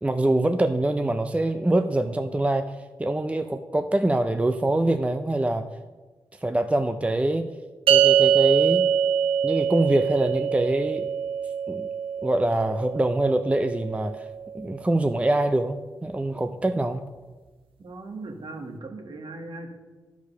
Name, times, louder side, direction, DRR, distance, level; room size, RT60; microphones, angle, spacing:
voice 1, 0.0-2.7 3.0-5.7 6.4-7.5 7.9-8.8 9.4-11.1 11.7-11.9 12.2-14.2 14.5-17.1, right 1 dB, 15° right, 8 dB, 0.5 m, -24 dB
sound 1, 7.9-14.4, right 8 dB, 80° right, 0.6 m, -24 dB
voice 2, 17.8-19.7, right 2 dB, 60° right, 4 dB, 1.4 m, -38 dB
11.5 x 4.8 x 5.7 m, 1.3 s
cardioid pair, 55°, 9 cm